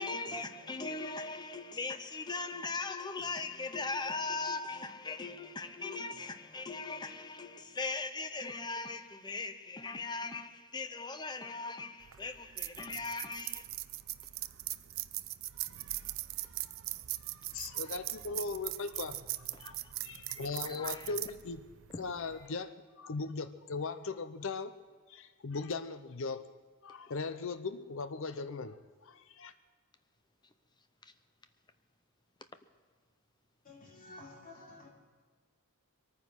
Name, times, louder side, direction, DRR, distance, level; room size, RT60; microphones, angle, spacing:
voice 1, 0.0-13.6 19.6-19.7 20.3-21.2 21.9-22.0 31.0-31.1, left 3 dB, 20° left, 0.7 m, -39 dB
sound 1, 12.0-22.5, right 16 dB, 60° right, 0.5 m, -41 dB
voice 2, 17.5-19.2 19.6-21.6 22.0-24.7 25.1-26.4 26.8-28.8 29.0-29.5, left 4 dB, 60° left, 0.6 m, -39 dB
voice 3, 33.6-34.9, left 2 dB, 40° left, 2.7 m, -51 dB
23.0 x 9.6 x 6.1 m
head